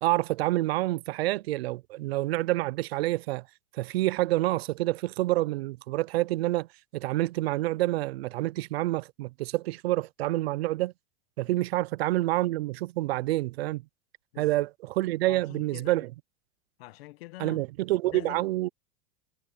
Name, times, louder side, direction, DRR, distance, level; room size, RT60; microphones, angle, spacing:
voice 1, 0.0-3.4 3.7-6.7 6.9-10.9 11.4-13.8 14.4-16.1 17.4-18.7, right 17 dB, 90° right, 0.6 m, -28 dB
voice 2, 11.5-11.8 14.3-14.6 15.3-16.1 16.8-17.7 18.0-18.7, left 20 dB, 75° left, 1.4 m, -45 dB
supercardioid pair, 140°, 30 cm